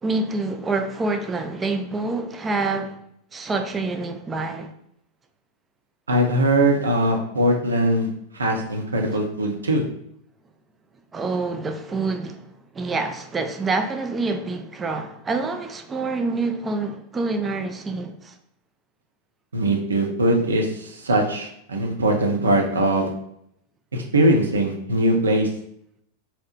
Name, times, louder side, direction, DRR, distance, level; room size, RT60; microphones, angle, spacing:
voice 1, 0.0-3.0 3.3-4.7 11.1-12.5 12.7-18.4, right 3 dB, 15° right, 0.3 m, -27 dB
voice 2, 6.1-9.8 19.5-23.1 23.9-25.5, right 1 dB, 75° right, 0.6 m, -21 dB
2.8 x 2.0 x 3.9 m
figure-of-eight pair, 90°, 0 cm